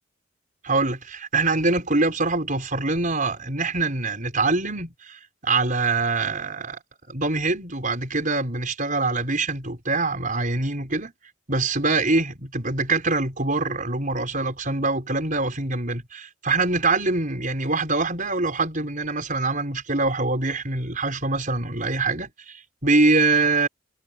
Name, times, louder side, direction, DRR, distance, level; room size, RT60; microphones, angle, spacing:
voice 1, 0.6-6.8 7.1-11.1 11.5-23.7, right 3 dB, 40° right, 6.3 m, -24 dB
head